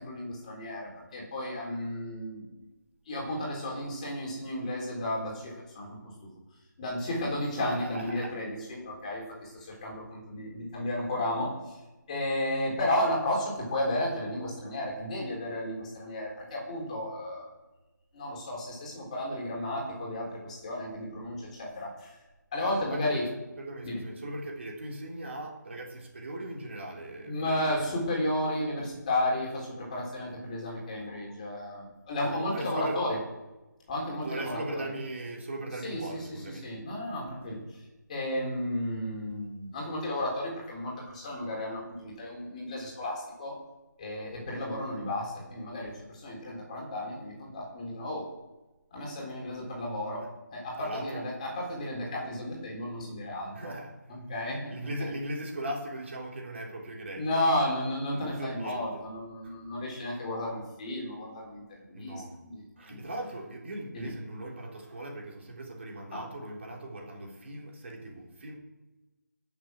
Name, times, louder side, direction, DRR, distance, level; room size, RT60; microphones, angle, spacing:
voice 1, 0.0-2.5 3.1-6.0 6.8-11.7 12.1-17.5 18.1-22.2 22.5-23.3 23.8-24.0 27.2-33.2 33.9-34.8 35.8-36.0 36.6-37.6 38.1-43.5 44.0-48.3 48.9-53.7 54.1-55.1 57.2-62.2 62.4-62.6 62.9-63.0 63.9-64.1 66.1-66.2, left 1 dB, 20° left, -2 dB, 4.0 m, -33 dB
voice 2, 7.6-8.3 22.6-23.3 23.6-27.9 32.2-33.0 34.2-36.7 37.1-37.2 50.2-50.3 50.8-51.3 52.0-52.1 53.5-54.0 54.4-57.3 58.1-59.0 59.4-59.5 61.9-62.4 62.8-68.6, right 1 dB, 40° right, -1 dB, 3.6 m, -39 dB
17.0 x 7.3 x 6.3 m, 1.1 s
figure-of-eight pair, 160°, 10 cm